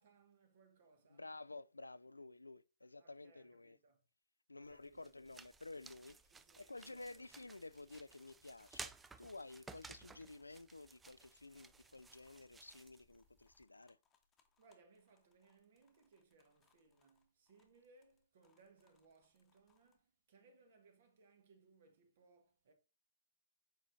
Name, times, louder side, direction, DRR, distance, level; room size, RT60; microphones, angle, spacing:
voice 1, 0.0-1.3 3.0-4.0 4.6-5.1 6.3-7.3 14.6-22.7, right 4 dB, 50° right, 1.4 m, -68 dB
voice 2, 1.1-3.8 4.5-6.2 6.6-14.0, left 2 dB, 85° left, 0.3 m, -53 dB
sound 1, 4.6-13.6, right 4 dB, 10° right, 0.3 m, -57 dB
sound 2, 7.0-20.0, left 6 dB, 20° left, 1.0 m, -80 dB
7.3 x 4.9 x 2.7 m
figure-of-eight pair, 120°, 0 cm